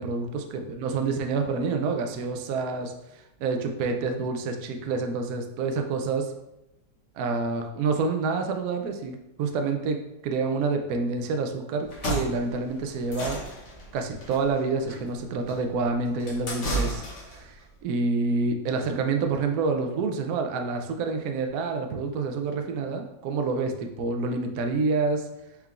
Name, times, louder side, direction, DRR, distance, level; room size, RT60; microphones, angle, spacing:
voice 1, 0.0-6.3 7.2-13.4 13.9-25.3, right 4 dB, 75° right, 5 dB, 0.9 m, -28 dB
sound 1, 11.8-17.5, right 1 dB, 50° left, 1.1 m, -33 dB
4.3 x 3.6 x 2.4 m, 0.90 s
omnidirectional pair, 2.0 m